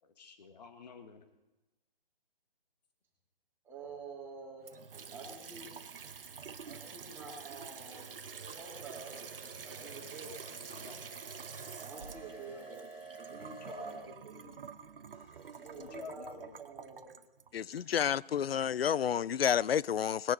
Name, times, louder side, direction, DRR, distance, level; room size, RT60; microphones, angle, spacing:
voice 1, 0.0-1.3 10.0-10.3 10.7-11.1 12.5-13.0 13.5-14.1 15.8-16.6, left 5 dB, 45° left, 1.9 m, -51 dB
voice 2, 3.6-4.7 5.1-5.7 6.6-8.1 8.5-9.1 9.6-10.3 11.8-12.9 13.1-14.6 15.6-17.0, right 4 dB, 10° right, 2.9 m, -48 dB
Water tap faucet / Sink (filling or washing) / Trickle dribble, 4.6-18.7, right 6 dB, 70° right, 1.1 m, -48 dB
sound 1, 7.8-14.0, right 3 dB, 15° left, 3.0 m, -52 dB
voice 3, 17.5-20.3, left 8 dB, 90° left, 0.5 m, -30 dB
20.0 x 11.0 x 4.0 m
hypercardioid pair, 155°, 29 cm